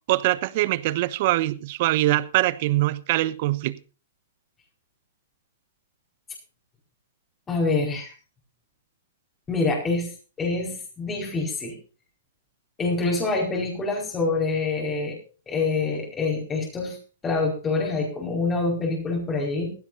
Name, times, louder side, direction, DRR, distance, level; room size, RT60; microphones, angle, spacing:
voice 1, 0.1-3.8, right 17 dB, 50° right, 0.9 m, -23 dB
voice 2, 7.5-8.1 9.5-10.1 10.4-11.8 12.8-15.2 15.5-17.0 17.2-19.7, left 3 dB, 20° left, 4.8 m, -26 dB
17.5 x 15.5 x 2.6 m
hypercardioid pair, 115°, 0 cm